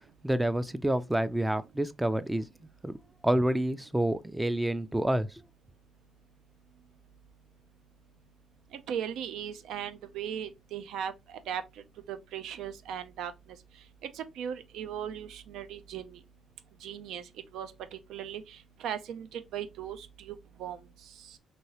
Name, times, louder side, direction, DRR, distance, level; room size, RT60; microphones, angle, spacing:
voice 1, 0.2-2.5 2.8-2.9 3.2-5.4, right 1 dB, 10° right, 0.3 m, -28 dB
voice 2, 8.9-11.1 11.5-11.6 12.1-13.3 14.1-16.2 16.8-17.2 17.5-18.6 18.8-20.8, right 9 dB, 85° right, 0.4 m, -37 dB
3.0 x 2.7 x 2.8 m
cardioid pair, 90°, 0 cm